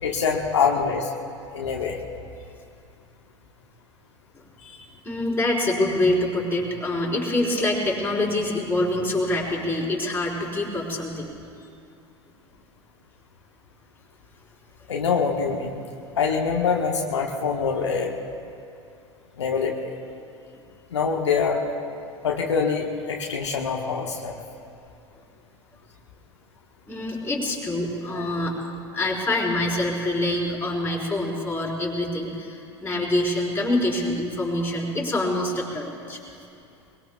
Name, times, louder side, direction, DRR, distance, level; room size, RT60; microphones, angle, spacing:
voice 1, 0.0-1.1 1.5-2.0 14.9-15.7 16.2-18.1 19.4-19.7 20.9-21.6 22.2-24.3 28.1-28.3, left 5 dB, 75° left, 0 dB, 1.4 m, -24 dB
voice 2, 4.6-11.3 11.6-11.7 20.5-20.6 26.9-28.6 28.9-36.2, left 1 dB, 10° left, -3 dB, 4.5 m, -25 dB
23.0 x 22.5 x 2.3 m, 2.6 s
figure-of-eight pair, 80°, 15 cm